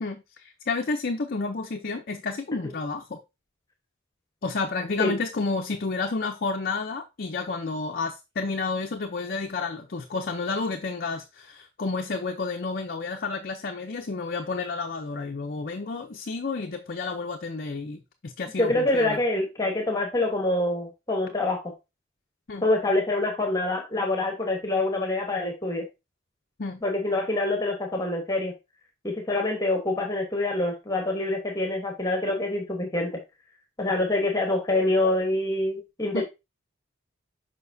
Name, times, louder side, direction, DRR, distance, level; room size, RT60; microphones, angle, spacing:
voice 1, 0.0-3.2 4.4-19.2 22.5-22.7 26.6-26.8 36.1-36.2, left 4 dB, 50° left, 0.6 m, -31 dB
voice 2, 18.6-21.7 22.6-25.8 26.8-28.5 29.0-33.2 33.8-36.2, left 2 dB, 20° left, 1.2 m, -26 dB
6.8 x 5.2 x 2.6 m
head